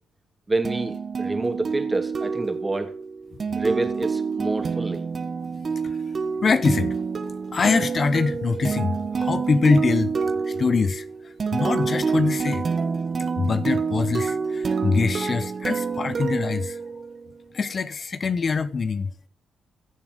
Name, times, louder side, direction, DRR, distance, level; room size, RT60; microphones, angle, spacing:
voice 1, 0.5-2.9 3.6-5.1, right 2 dB, 20° right, 2.8 m, -27 dB
sound 1, 0.6-17.3, right 5 dB, 45° right, 1.7 m, -27 dB
voice 2, 6.4-7.0 7.5-10.1 10.4-12.7 13.4-16.8 17.5-19.1, left 4 dB, 45° left, 0.9 m, -24 dB
15.5 x 7.2 x 6.6 m
supercardioid pair, 65°, 0 cm